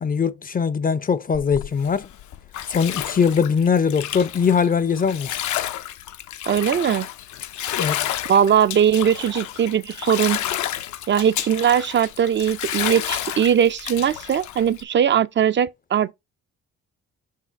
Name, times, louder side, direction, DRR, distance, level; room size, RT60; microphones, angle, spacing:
voice 1, 0.0-2.1 2.7-5.4 7.8-8.1, left 6 dB, 30° left, 0.5 m, -21 dB
Bathtub (filling or washing), 1.3-14.8, left 12 dB, 70° left, 0.6 m, -30 dB
voice 2, 6.5-7.1 8.3-10.4 11.1-16.1, right 9 dB, 40° right, 0.4 m, -20 dB
5.4 x 4.7 x 4.4 m
cardioid pair, 90°, 30 cm